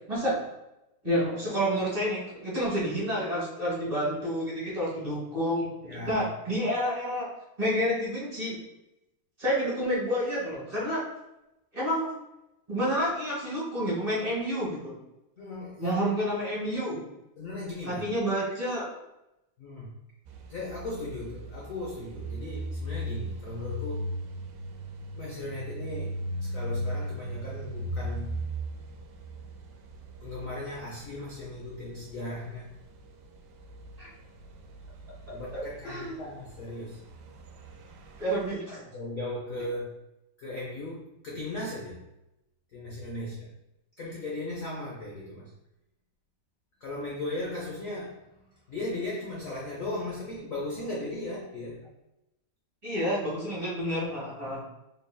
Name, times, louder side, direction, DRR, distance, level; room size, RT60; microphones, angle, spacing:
voice 1, 0.1-0.4 1.0-7.3 7.6-8.6 9.4-11.0 11.7-12.1 12.7-15.0 15.8-17.0 17.8-18.8 34.0-34.1 35.3-36.2 38.2-38.8 52.8-54.6, equal, 25° right, -7 dB, 1.1 m, -29 dB
voice 2, 5.9-6.3 15.4-16.0 17.4-18.0 19.6-19.9 20.5-24.1 25.1-28.4 30.2-32.7 35.3-37.0 38.7-40.0 40.4-42.0 42.7-43.5 44.0-45.5 46.8-48.2 48.7-51.9 54.5-54.6, left 2 dB, 85° left, -3 dB, 0.7 m, -37 dB
sound 1, 20.3-38.5, equal, 75° right, 0.9 m, -38 dB
3.9 x 3.4 x 2.2 m, 0.91 s
omnidirectional pair, 2.3 m